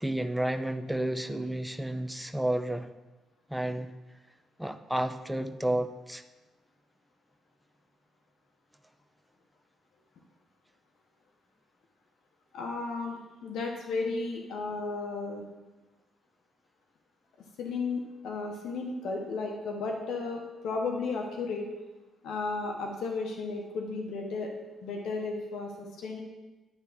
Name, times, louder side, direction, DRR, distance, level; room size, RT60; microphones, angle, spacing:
voice 1, 0.0-2.9 3.5-3.9 4.6-6.2, right 1 dB, 5° right, 9 dB, 0.5 m, -31 dB
voice 2, 12.5-15.4 17.6-21.7 22.2-24.5 24.8-26.2, left 3 dB, 75° left, 2 dB, 1.0 m, -34 dB
10.0 x 3.5 x 6.1 m, 1.1 s
cardioid pair, 90°, 0 cm